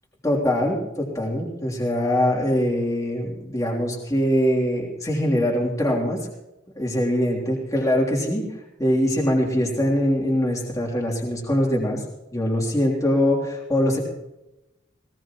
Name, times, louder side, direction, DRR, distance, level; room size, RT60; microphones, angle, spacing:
voice 1, 0.2-6.3 6.7-8.4 8.8-12.0 12.3-14.0, equal, 20° left, -3 dB, 3.3 m, -23 dB
19.0 x 18.5 x 3.1 m, 0.96 s
head